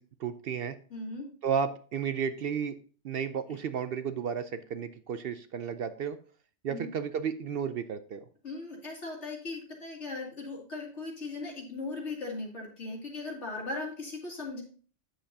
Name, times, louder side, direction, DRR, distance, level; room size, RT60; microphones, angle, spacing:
voice 1, 0.0-0.8 1.4-2.7 3.0-6.2 6.6-8.2, right 7 dB, 65° right, 11 dB, 0.7 m, -33 dB
voice 2, 0.9-1.3 6.7-6.9 8.4-14.6, left 3 dB, 70° left, -2 dB, 2.9 m, -38 dB
8.9 x 7.6 x 2.7 m, 0.40 s
omnidirectional pair, 1.2 m